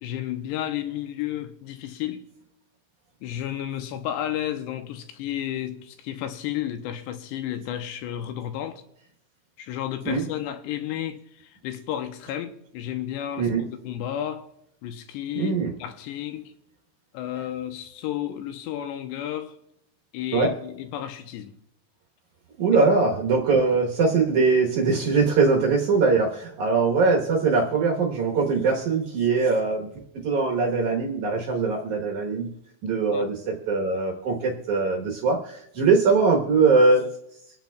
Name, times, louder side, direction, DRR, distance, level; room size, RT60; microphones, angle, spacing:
voice 1, 0.0-2.3 3.2-8.8 9.6-13.5 13.8-14.5 14.8-16.5 17.1-19.6 20.1-21.6 33.1-33.3, left 11 dB, 85° left, 2.9 m, -32 dB
voice 2, 15.4-15.7 20.3-20.5 22.6-29.9 30.2-32.5 32.8-37.1, right 4 dB, 65° right, 2.1 m, -21 dB
26.5 x 8.9 x 2.3 m
omnidirectional pair, 4.8 m